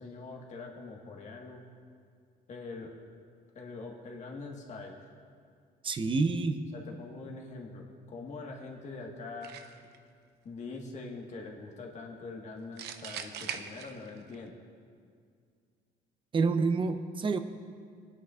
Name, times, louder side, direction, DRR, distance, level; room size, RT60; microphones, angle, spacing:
voice 1, 0.0-1.6 2.5-2.9 3.5-5.0 6.7-9.6 10.4-14.5, left 3 dB, 45° left, 0 dB, 1.5 m, -43 dB
voice 2, 5.8-6.6 16.3-17.4, right 4 dB, 30° right, 8 dB, 0.8 m, -28 dB
sound 1, 9.4-10.0 12.8-14.3, right 8 dB, 80° right, 0.7 m, -40 dB
20.0 x 9.5 x 2.5 m, 2.2 s
cardioid pair, 110°, 17 cm